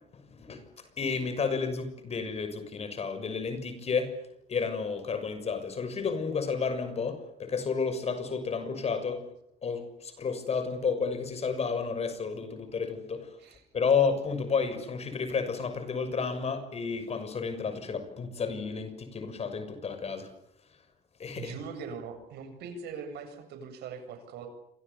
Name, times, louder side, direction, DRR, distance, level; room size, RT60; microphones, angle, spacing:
voice 1, 0.1-0.6 1.0-4.2 4.5-9.2 9.6-13.3 13.7-20.3 21.2-21.5, left 5 dB, 40° left, 9 dB, 6.5 m, -31 dB
voice 2, 21.4-24.5, right 5 dB, 75° right, 8 dB, 8.0 m, -41 dB
28.5 x 26.5 x 7.1 m, 0.76 s
cardioid pair, 110°, 17 cm